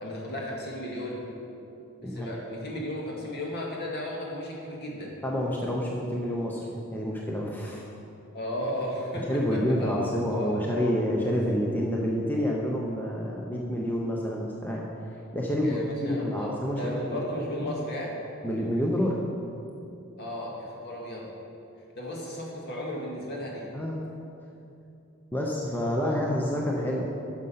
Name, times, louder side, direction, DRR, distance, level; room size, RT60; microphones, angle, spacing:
voice 1, 0.0-1.2 2.0-5.1 8.3-10.9 15.6-18.1 20.2-21.3 22.0-23.7 26.0-26.2, left 1 dB, 50° left, -3 dB, 1.9 m, -35 dB
voice 2, 5.2-7.8 9.3-14.9 15.3-17.8 18.4-19.2 23.7-24.1 25.3-27.0, equal, 10° left, -2 dB, 0.7 m, -28 dB
9.6 x 6.5 x 5.7 m, 2.7 s
head